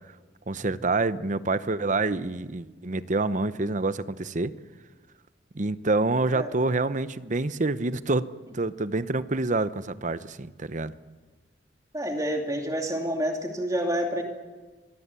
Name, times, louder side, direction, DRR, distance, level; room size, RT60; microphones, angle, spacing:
voice 1, 0.5-4.5 5.5-8.3 8.5-10.9, right 3 dB, 45° right, 14 dB, 0.9 m, -27 dB
voice 2, 11.9-14.2, equal, 20° right, 3 dB, 2.6 m, -28 dB
25.0 x 21.0 x 8.4 m, 1.3 s
head